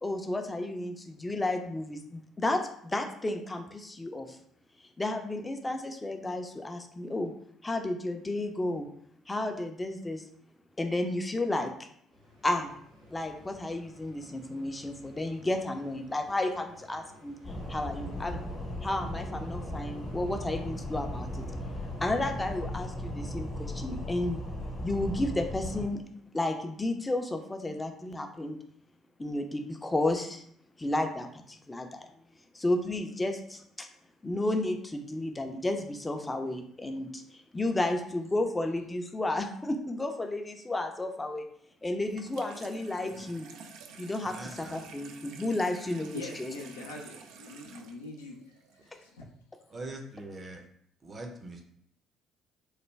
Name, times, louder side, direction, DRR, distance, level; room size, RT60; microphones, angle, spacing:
voice 1, 0.0-4.4 5.0-7.3 7.6-8.9 9.3-10.2 10.8-11.7 12.4-12.8 13.1-17.4 17.7-18.4 18.8-21.4 22.0-24.4 24.8-26.0 26.3-28.6 29.2-30.4 30.8-32.1 32.5-33.9 34.2-41.5 41.8-43.5 44.0-46.5, left 2 dB, 20° left, 5 dB, 0.5 m, -32 dB
sound 1, 12.1-23.4, left 1 dB, 80° right, 1.1 m, -56 dB
sound 2, 17.4-25.9, equal, 40° left, 0.8 m, -37 dB
Water tap faucet / Sink (filling or washing), 42.1-49.1, right 5 dB, 65° right, 0.3 m, -50 dB
voice 2, 44.2-44.9 49.7-50.6 51.0-51.6, right 2 dB, 35° right, 3 dB, 0.6 m, -42 dB
voice 3, 46.1-48.4 48.9-49.2, left 2 dB, 80° left, 0 dB, 0.5 m, -43 dB
3.2 x 2.2 x 3.3 m, 0.68 s
figure-of-eight pair, 50°, 0 cm